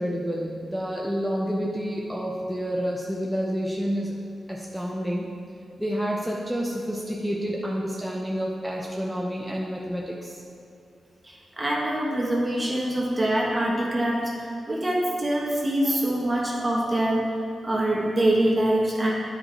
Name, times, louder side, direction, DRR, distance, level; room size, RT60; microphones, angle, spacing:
voice 1, 0.0-4.2 4.5-5.3 5.8-10.4, equal, 5° right, -3 dB, 0.8 m, -29 dB
voice 2, 11.2-17.3 17.6-19.1, right 1 dB, 25° right, -4 dB, 1.3 m, -24 dB
8.8 x 4.9 x 4.3 m, 2.6 s
cardioid pair, 70°, 0 cm